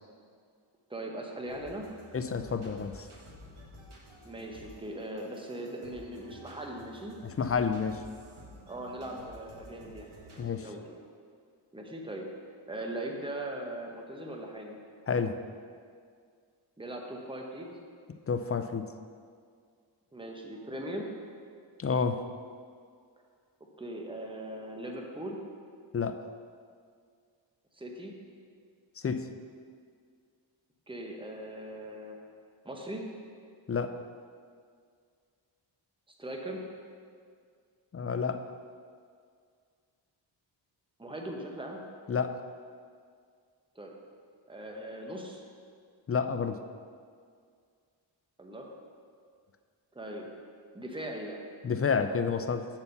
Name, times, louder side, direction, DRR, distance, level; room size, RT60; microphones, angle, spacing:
voice 1, 0.9-1.9 4.2-7.2 8.7-11.0 11.7-12.3 12.7-14.8 16.8-17.7 20.1-21.1 23.8-25.4 27.7-28.1 30.9-32.2 32.6-33.1 36.2-36.6 41.0-41.8 43.7-43.9 44.5-45.4 48.4-48.7 49.9-50.3 50.7-51.4, right 1 dB, 10° right, 1 dB, 1.0 m, -40 dB
sound 1, 1.4-10.4, equal, 90° right, 1.5 m, -52 dB
voice 2, 2.1-3.1 7.4-8.0 10.4-10.7 15.1-15.4 18.3-18.9 21.8-22.2 25.9-26.2 29.0-29.3 33.7-34.0 37.9-38.4 42.1-42.4 46.1-46.6 51.6-52.7, left 5 dB, 30° left, 9 dB, 0.4 m, -29 dB
6.9 x 4.4 x 6.7 m, 2.1 s
wide cardioid pair, 80°, 47 cm